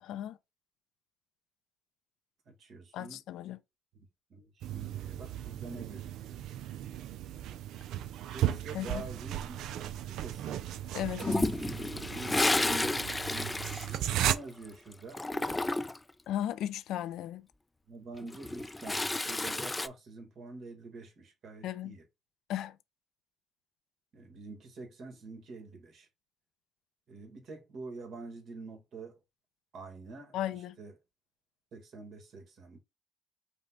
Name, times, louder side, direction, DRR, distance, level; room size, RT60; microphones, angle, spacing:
voice 1, 0.0-0.4 2.9-3.6 8.7-9.0 10.9-11.5 16.3-17.5 21.6-22.0 22.5-22.8 30.3-30.8, left 12 dB, 85° left, 0.5 m, -36 dB
voice 2, 2.5-3.2 3.9-6.4 8.3-10.7 12.1-15.9 17.9-22.0 24.1-26.1 27.1-29.2 29.7-30.9 31.7-32.8, right 3 dB, 65° right, 1.7 m, -47 dB
sound 1, 4.6-14.4, right 12 dB, 85° right, 0.4 m, -36 dB
Toilet flush, 11.2-14.7 14.9-16.1 18.1-19.9, left 2 dB, 15° left, 0.3 m, -31 dB
5.2 x 2.3 x 4.0 m
cardioid pair, 90°, 0 cm